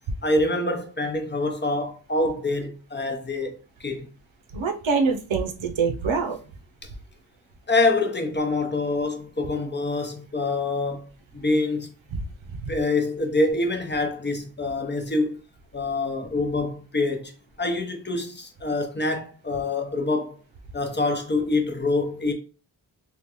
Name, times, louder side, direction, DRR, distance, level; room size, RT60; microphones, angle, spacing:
voice 1, 0.2-4.1 6.8-6.9 7.7-11.9 12.7-15.4 15.7-17.3 17.6-20.4 20.7-22.3, left 2 dB, 25° left, 0.7 m, -26 dB
voice 2, 4.5-6.4 12.1-12.2 12.5-12.7, right 5 dB, 90° right, 0.7 m, -25 dB
3.6 x 2.3 x 2.9 m
wide cardioid pair, 80°, 45 cm